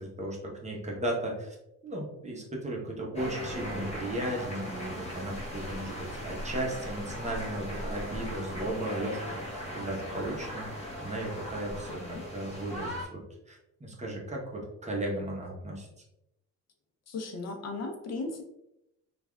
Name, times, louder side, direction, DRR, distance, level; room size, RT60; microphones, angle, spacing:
voice 1, 0.0-1.6 1.8-9.4 9.7-15.9, right 1 dB, 25° right, -2 dB, 0.8 m, -35 dB
sound 1, 3.1-13.0, equal, 20° left, 1.0 m, -38 dB
voice 2, 11.9-12.2 17.1-18.4, left 3 dB, 60° left, 2 dB, 0.6 m, -36 dB
3.2 x 2.4 x 2.2 m, 0.85 s
cardioid pair, 90°, 30 cm